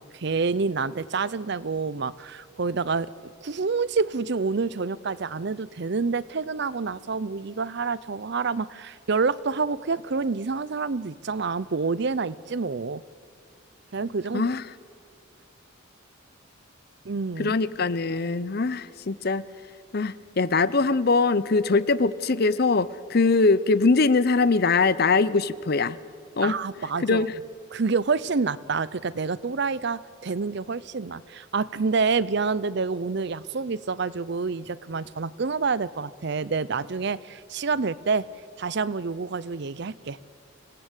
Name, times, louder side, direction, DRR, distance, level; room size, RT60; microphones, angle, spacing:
voice 1, 0.0-3.1 3.4-13.0 13.9-14.5 17.0-17.5 26.4-27.2 27.7-38.3 38.6-40.2, right 4 dB, 55° right, 18 dB, 0.6 m, -28 dB
voice 2, 14.3-14.6 17.4-19.4 19.9-26.0 26.4-26.6 27.0-27.3, left 3 dB, 50° left, 17 dB, 0.6 m, -22 dB
26.0 x 18.0 x 8.2 m, 2.1 s
head